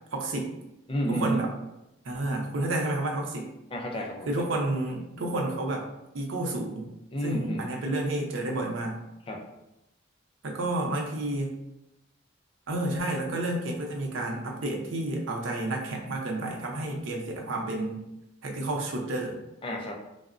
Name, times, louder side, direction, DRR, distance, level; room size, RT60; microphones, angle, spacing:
voice 1, 0.1-0.5 1.1-1.5 2.0-3.5 4.3-5.9 6.1-6.9 7.2-9.0 10.4-11.6 12.7-18.0 18.4-19.4, right 2 dB, 85° right, 0 dB, 0.6 m, -30 dB
voice 2, 0.9-1.5 3.7-4.5 7.1-7.7 9.3-9.4 19.6-19.9, right 1 dB, 30° left, 1 dB, 0.4 m, -31 dB
3.5 x 2.0 x 2.4 m, 0.89 s
head